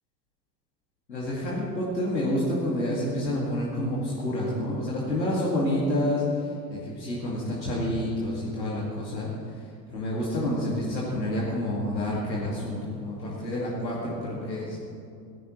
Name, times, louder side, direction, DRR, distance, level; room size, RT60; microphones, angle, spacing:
voice 1, 1.1-6.2 6.7-9.3 9.9-14.8, left 1 dB, 85° left, -6 dB, 2.4 m, -28 dB
17.0 x 15.5 x 3.2 m, 2.5 s
figure-of-eight pair, 75°, 50 cm